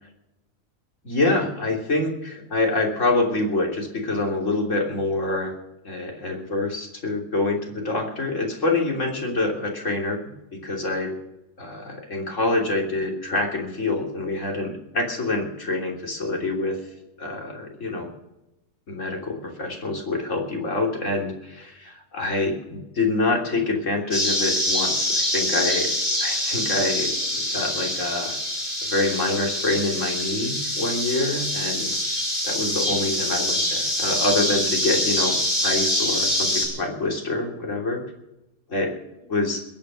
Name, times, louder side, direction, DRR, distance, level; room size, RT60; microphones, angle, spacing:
voice 1, 1.0-5.5 5.9-10.2 10.6-11.1 11.6-16.8 17.2-18.1 18.9-25.9 26.2-28.4 28.8-31.9 32.4-35.4 35.6-38.0 38.7-38.9 39.3-39.6, left 2 dB, 60° left, 1 dB, 3.5 m, -26 dB
sound 1, 24.1-36.7, equal, 35° left, 5.7 m, -25 dB
21.5 x 9.1 x 6.3 m, 0.92 s
omnidirectional pair, 1.5 m